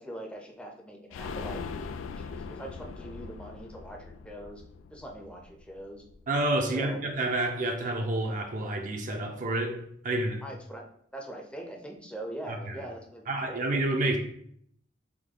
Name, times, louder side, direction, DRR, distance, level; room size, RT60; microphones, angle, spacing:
voice 1, 0.0-4.6 4.9-6.0 6.6-7.0 10.4-10.9 11.1-13.7, right 1 dB, 5° left, 0.6 m, -42 dB
sound 1, 1.1-6.7 7.0-7.1 7.4-7.5, left 5 dB, 85° left, 0.3 m, -41 dB
voice 2, 6.3-10.4 12.5-12.8 13.3-14.2, right 2 dB, 45° right, 0.5 m, -29 dB
3.6 x 3.1 x 3.7 m
head